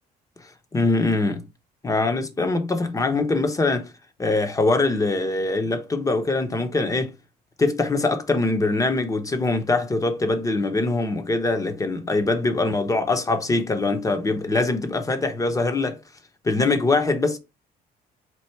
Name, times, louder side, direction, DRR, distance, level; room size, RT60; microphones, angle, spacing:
voice 1, 0.7-1.4 1.8-3.9 4.2-7.1 7.6-16.0 16.4-17.4, left 3 dB, 20° left, 0.8 m, -23 dB
4.5 x 2.4 x 4.5 m
cardioid pair, 110°, 17 cm